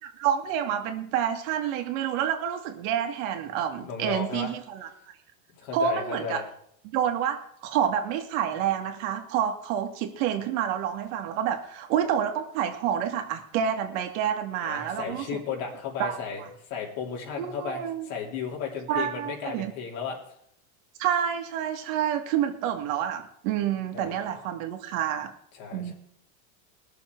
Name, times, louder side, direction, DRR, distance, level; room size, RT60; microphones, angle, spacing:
voice 1, 0.0-4.9 5.7-6.4 6.8-15.4 16.0-16.5 17.4-18.1 18.9-19.7 21.0-25.3 25.7-25.9, right 9 dB, 70° right, 5 dB, 2.0 m, -28 dB
voice 2, 3.8-4.5 5.6-6.4 14.6-16.4 16.7-20.2 23.9-24.2 25.5-25.9, left 6 dB, 75° left, 0 dB, 3.3 m, -34 dB
19.0 x 7.0 x 4.6 m, 0.69 s
supercardioid pair, 115°, 41 cm